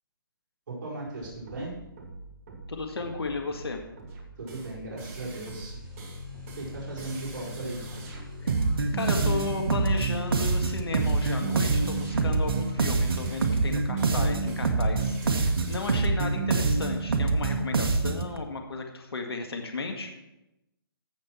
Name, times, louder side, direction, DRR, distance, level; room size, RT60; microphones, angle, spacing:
voice 1, 0.7-1.7 4.4-5.7 6.6-7.9, right 2 dB, 50° right, -5 dB, 4.6 m, -37 dB
sound 1, 1.2-16.0, right 3 dB, 35° right, 2.4 m, -43 dB
voice 2, 2.7-3.8 8.4-8.5 8.9-20.1, left 3 dB, 90° left, 3 dB, 1.9 m, -34 dB
sound 2, 5.4-13.3, left 4 dB, 5° right, 3.0 m, -44 dB
sound 3, 8.5-18.3, right 3 dB, 75° right, 1.4 m, -25 dB
15.5 x 6.3 x 4.5 m, 0.92 s
hypercardioid pair, 155°, 13 cm